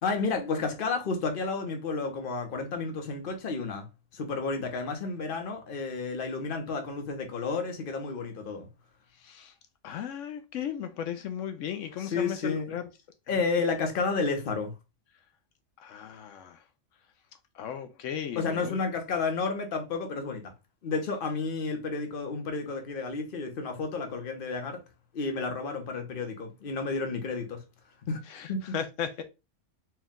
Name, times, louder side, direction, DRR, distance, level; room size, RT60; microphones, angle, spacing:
voice 1, 0.0-3.9 4.1-8.7 12.0-12.7 13.3-14.7 18.4-20.5 20.8-24.8 25.1-27.6 28.1-28.2 28.5-28.7, left 4 dB, 50° left, 1.0 m, -31 dB
voice 2, 9.1-9.5 9.8-12.9 13.3-13.7 15.8-16.6 17.5-18.9 28.2-29.2, left 9 dB, 80° left, 0.9 m, -36 dB
4.5 x 2.3 x 3.6 m
omnidirectional pair, 1.3 m